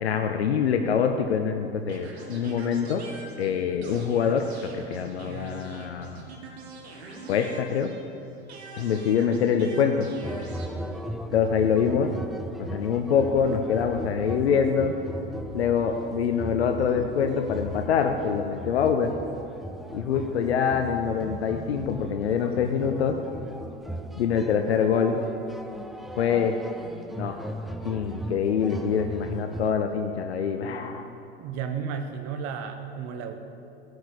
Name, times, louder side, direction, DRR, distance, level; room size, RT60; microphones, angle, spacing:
voice 1, 0.0-3.0 3.4-6.2 7.3-7.9 8.8-10.1 11.3-12.1 12.7-14.9 15.5-19.2 19.9-23.1 24.2-25.2 26.2-26.5 27.2-27.4 27.8-31.1, left 7 dB, 80° left, 5 dB, 0.8 m, -25 dB
sound 1, 1.9-8.1 8.5-10.7, right 3 dB, 80° right, 2.0 m, -43 dB
sound 2, 10.2-29.7, equal, ahead, 0.6 m, -38 dB
voice 2, 31.4-33.4, right 6 dB, 50° right, 6 dB, 1.1 m, -33 dB
12.0 x 6.4 x 8.6 m, 2.8 s
hypercardioid pair, 85°, 32 cm